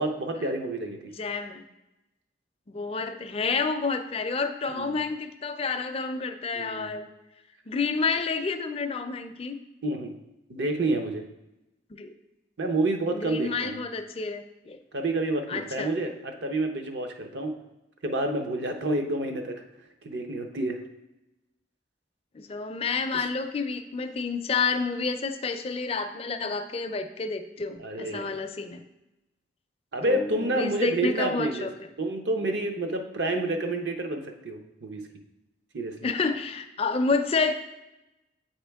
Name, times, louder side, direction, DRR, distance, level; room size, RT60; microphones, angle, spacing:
voice 1, 0.0-1.1 4.7-5.0 6.5-7.0 9.8-10.1 10.5-11.2 12.6-13.8 14.9-17.5 18.0-19.5 20.0-20.8 23.1-23.2 27.8-28.3 29.9-31.7 32.0-35.0 35.7-36.0, right 2 dB, 65° right, 5 dB, 0.7 m, -29 dB
voice 2, 1.1-1.6 2.7-7.1 7.7-9.6 11.9-12.1 13.1-14.8 15.5-15.9 22.3-28.8 30.1-31.9 36.0-37.5, left 4 dB, 30° left, 7 dB, 0.4 m, -29 dB
7.8 x 4.3 x 3.4 m, 0.95 s
head